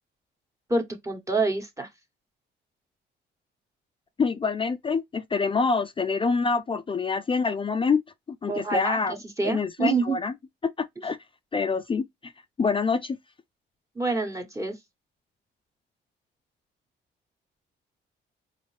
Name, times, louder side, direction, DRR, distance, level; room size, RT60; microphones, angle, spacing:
voice 1, 0.7-1.9 8.5-10.2 13.9-14.8, right 3 dB, 15° right, 1.1 m, -27 dB
voice 2, 4.2-8.0 8.4-9.1 9.4-10.3 10.8-11.2 11.5-12.3 12.6-13.2, left 4 dB, 25° left, 0.4 m, -26 dB
4.1 x 2.7 x 3.2 m
cardioid pair, 90°, 20 cm